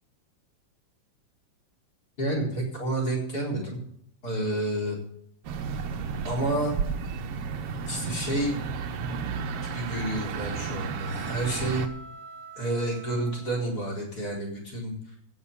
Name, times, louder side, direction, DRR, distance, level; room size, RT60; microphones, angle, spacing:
voice 1, 2.2-3.8 4.2-5.0 6.2-6.7 7.9-8.6 9.6-11.9 12.6-15.2, right 1 dB, 30° left, 2 dB, 4.6 m, -30 dB
sound 1, 5.4-11.9, right 5 dB, 65° right, 1.6 m, -33 dB
sound 2, 9.3-13.8, right 5 dB, 35° right, 2.6 m, -46 dB
15.5 x 7.6 x 6.9 m, 0.70 s
omnidirectional pair, 3.7 m